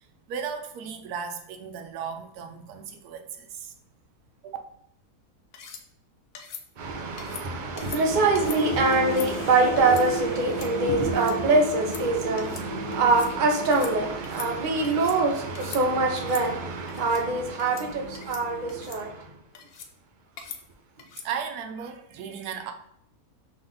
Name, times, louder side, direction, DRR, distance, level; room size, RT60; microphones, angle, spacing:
voice 1, 0.3-3.7 4.4-4.6 21.2-22.7, right 7 dB, 80° right, 1.1 m, -35 dB
sound 1, 5.5-5.8 6.3-6.6 7.2-7.4 7.8-8.0 8.3-8.6 8.9-9.3 9.8-10.0 10.4-10.7 11.0-11.3 11.7-12.0 12.4-12.7 12.9-13.3 13.6-13.9 14.2-15.2 15.5-15.8 16.2-16.4 16.9-17.2 17.6-17.9 18.1-18.4 18.7-19.0 19.5-19.9 20.4-20.6 21.0-21.3, left 7 dB, 70° left, 0.5 m, -42 dB
voice 2, 6.8-19.3, right 3 dB, 45° right, 0.6 m, -24 dB
sound 2, 7.8-19.4, right 2 dB, 45° left, 0.9 m, -35 dB
3.8 x 3.3 x 3.8 m
omnidirectional pair, 1.6 m